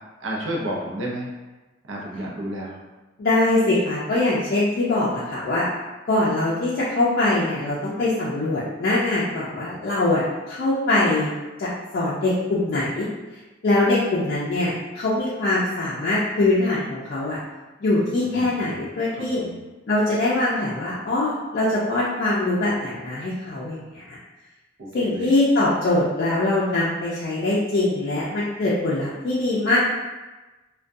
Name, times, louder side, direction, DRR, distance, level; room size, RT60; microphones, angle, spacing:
voice 1, 0.2-1.3 1.9-2.8 18.2-18.8 19.1-19.6 24.8-25.3, right 1 dB, 75° right, -2 dB, 0.5 m, -31 dB
voice 2, 3.2-5.7 6.1-11.3 11.6-13.1 13.6-17.4 17.8-19.4 19.9-24.2 24.9-29.8, left 2 dB, 55° left, -7 dB, 0.4 m, -23 dB
2.3 x 2.2 x 2.5 m, 1.2 s
head